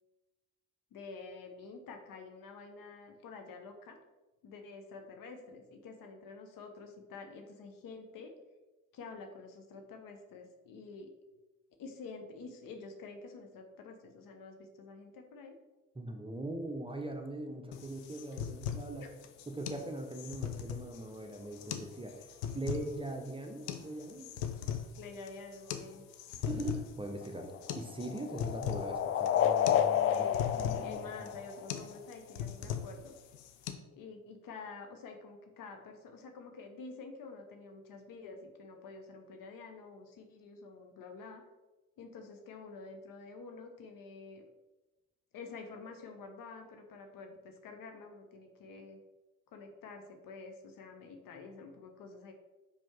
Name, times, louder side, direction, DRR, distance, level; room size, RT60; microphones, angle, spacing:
voice 1, 0.9-4.0 4.4-8.3 8.9-11.1 11.8-15.6 19.0-19.1 25.0-26.1 30.1-33.1 33.9-41.4 42.0-44.4 45.3-49.0 49.5-52.3, left 4 dB, 55° left, 5 dB, 1.0 m, -48 dB
voice 2, 15.9-19.1 19.5-22.3 22.5-24.3 26.4-31.3, right 1 dB, 15° right, 3 dB, 0.9 m, -41 dB
sound 1, 17.7-33.7, left 8 dB, 70° left, 0.6 m, -40 dB
sound 2, 27.2-32.0, left 10 dB, 35° left, 0.4 m, -31 dB
5.1 x 5.1 x 3.6 m, 1.1 s
figure-of-eight pair, 45°, 41 cm